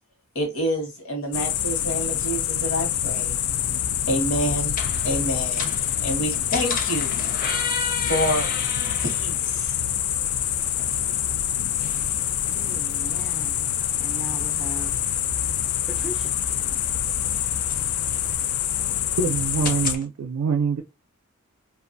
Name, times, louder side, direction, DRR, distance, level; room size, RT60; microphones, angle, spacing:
voice 1, 0.3-3.3 4.1-4.7 5.0-5.7 6.0-7.1 8.0-8.5 9.0-9.8, equal, 65° left, 1.0 m, -27 dB
sound 1, 1.3-20.0, left 10 dB, 80° left, 0.3 m, -26 dB
sound 2, 2.8-20.0, left 3 dB, 40° left, 0.6 m, -37 dB
voice 2, 12.5-13.7 14.0-14.9 15.8-16.4, right 1 dB, 5° right, 0.3 m, -38 dB
voice 3, 19.2-20.8, right 5 dB, 90° right, 0.4 m, -24 dB
2.5 x 2.3 x 2.5 m
head